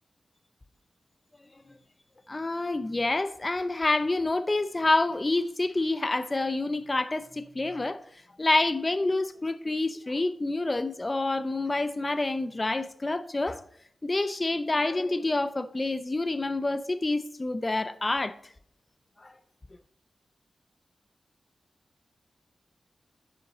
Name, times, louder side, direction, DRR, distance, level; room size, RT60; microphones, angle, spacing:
voice 1, 2.3-8.0 8.4-13.6 14.0-18.3 19.2-19.3, left 2 dB, 30° left, 0.6 m, -27 dB
10.0 x 5.8 x 3.9 m
cardioid pair, 50°, 0 cm